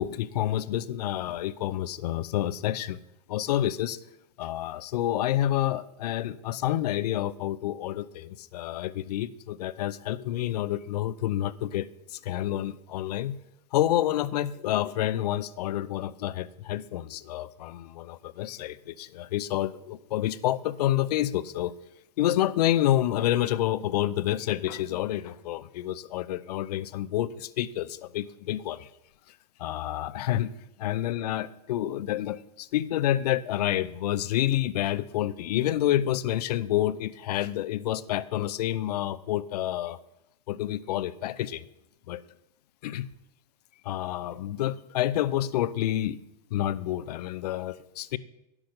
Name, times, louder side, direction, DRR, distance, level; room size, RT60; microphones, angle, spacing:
voice 1, 0.0-3.0 3.3-4.0 4.4-13.4 13.7-21.7 22.2-28.9 29.6-40.0 40.5-41.6 42.1-42.2 42.8-43.1 43.8-46.2 46.5-48.2, left 13 dB, 70° left, 16 dB, 0.6 m, -28 dB
10.0 x 6.1 x 6.5 m, 0.88 s
hypercardioid pair, 115°, 21 cm